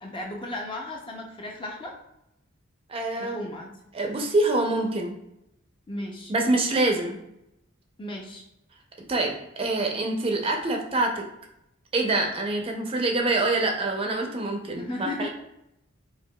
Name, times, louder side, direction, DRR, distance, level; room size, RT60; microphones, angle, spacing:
voice 1, 0.0-1.9 3.2-3.7 5.9-6.3 8.0-8.4 14.7-15.3, left 1 dB, 25° left, 0 dB, 0.5 m, -35 dB
voice 2, 2.9-3.5 3.9-5.1 6.3-7.2 9.1-11.2 11.9-15.3, right 2 dB, 25° right, 2 dB, 0.5 m, -25 dB
4.5 x 2.7 x 2.2 m, 0.84 s
head